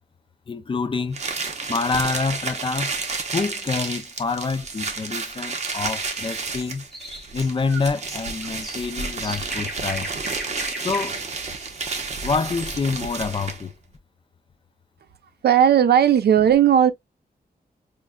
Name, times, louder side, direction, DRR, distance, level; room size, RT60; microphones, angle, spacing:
voice 1, 0.5-1.2 1.7-3.0 3.3-6.8 7.3-10.1 10.8-11.2 12.2-13.7, left 4 dB, 30° left, 0.4 m, -27 dB
sound 1, 1.1-13.7, right 4 dB, 45° right, 0.8 m, -31 dB
sound 2, 6.1-12.7, right 1 dB, ahead, 0.9 m, -38 dB
voice 2, 15.4-16.9, right 9 dB, 80° right, 0.5 m, -16 dB
5.1 x 2.5 x 2.2 m
wide cardioid pair, 155°, 16 cm